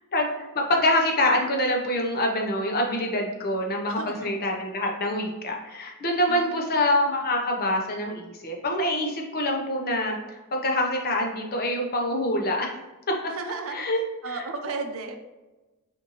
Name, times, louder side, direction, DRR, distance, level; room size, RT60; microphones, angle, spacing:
voice 1, 0.1-12.7 13.1-13.3 13.7-14.0 14.3-14.4, left 1 dB, 45° left, 0 dB, 0.9 m, -25 dB
voice 2, 3.9-4.3 6.3-6.7 13.3-13.8 14.2-15.2, right 4 dB, 65° right, 6 dB, 0.6 m, -34 dB
6.5 x 2.7 x 3.0 m, 1.1 s
head